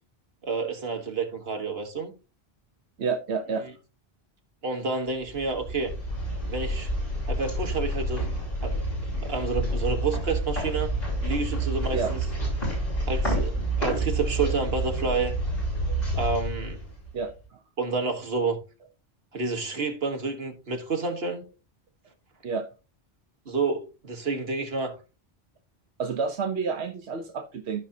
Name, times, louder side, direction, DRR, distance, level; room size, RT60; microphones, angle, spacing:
voice 1, 0.4-2.1 4.6-5.9 6.5-6.9 7.3-8.3 8.6-8.8 9.2-10.9 11.2-12.2 13.1-15.4 16.1-16.8 17.8-18.6 19.3-21.4 23.5-25.0, right 4 dB, 70° right, 1.7 m, -29 dB
voice 2, 3.0-3.6 11.9-12.1 15.9-16.0 17.1-17.3 22.4-22.7 26.0-27.8, right 5 dB, 90° right, 1.1 m, -29 dB
sound 1, 5.3-17.3, right 1 dB, 70° left, 6.0 m, -29 dB
14.5 x 5.0 x 2.7 m
omnidirectional pair, 1.1 m